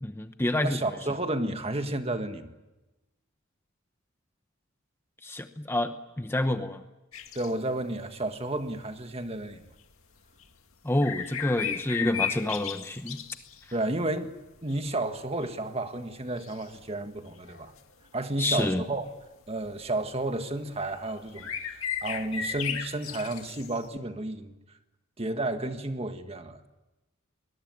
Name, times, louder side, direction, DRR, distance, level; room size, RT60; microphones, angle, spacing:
voice 1, 0.0-0.8 5.2-6.8 10.8-13.2 18.4-18.8, left 1 dB, 10° left, 0.9 m, -28 dB
voice 2, 0.6-2.5 7.3-9.6 13.7-14.3 14.6-17.7 18.1-19.0 19.5-24.5 25.2-26.7, right 2 dB, 30° right, 1.7 m, -32 dB
sound 1, 7.1-7.5 9.5-9.6 10.4-10.5 11.0-13.8 14.4-14.9 15.4-15.5 16.4-16.8 17.4-17.8 19.6-19.9 21.0-21.1 21.3-23.9, left 8 dB, 90° left, 2.2 m, -35 dB
24.0 x 21.0 x 9.6 m
head